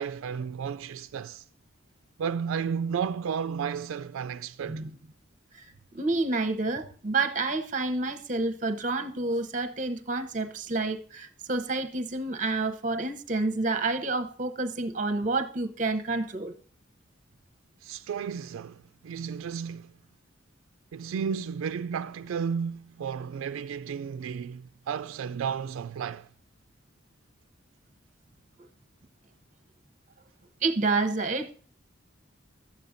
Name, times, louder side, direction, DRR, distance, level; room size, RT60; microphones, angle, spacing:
voice 1, 0.0-1.4 2.2-4.8 17.8-19.9 20.9-26.3, right 7 dB, 80° right, 0.3 m, -33 dB
voice 2, 5.5-16.5 30.6-31.5, right 3 dB, 40° right, 0.7 m, -29 dB
12.0 x 8.4 x 2.6 m
head